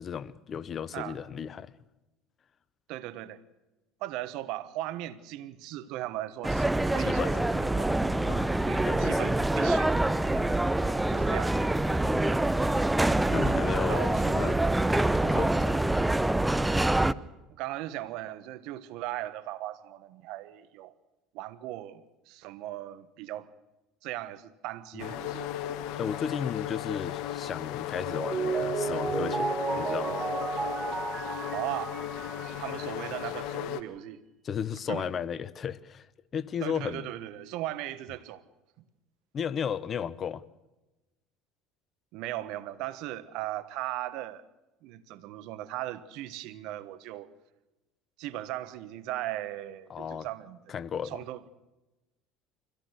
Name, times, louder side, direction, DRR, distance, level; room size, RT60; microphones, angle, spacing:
voice 1, 0.0-1.7 7.0-7.4 8.2-8.6 8.8-9.3 13.3-14.6 15.2-15.8 24.9-25.1 25.5-25.7 26.0-29.5 29.8-30.2 34.4-36.1 36.3-37.1 39.3-40.4 49.9-50.3 50.7-51.2, left 7 dB, 40° left, 0.8 m, -34 dB
voice 2, 2.9-3.4 4.0-8.0 8.3-9.9 10.3-10.5 11.1-11.6 13.4-14.6 14.8-14.9 15.3-15.5 17.6-20.9 21.3-23.5 24.0-25.5 31.5-32.0 32.4-34.2 34.9-35.1 36.6-38.4 42.1-44.4 44.8-47.3 48.2-50.6 51.0-51.5, right 14 dB, 65° right, 1.3 m, -38 dB
sound 1, 6.4-17.1, right 2 dB, 10° right, 0.7 m, -25 dB
sound 2, 25.0-33.8, left 11 dB, 65° left, 1.3 m, -35 dB
Mallet percussion, 28.0-33.0, right 5 dB, 25° right, 1.1 m, -32 dB
24.5 x 17.0 x 6.5 m
hypercardioid pair, 75°, 0 cm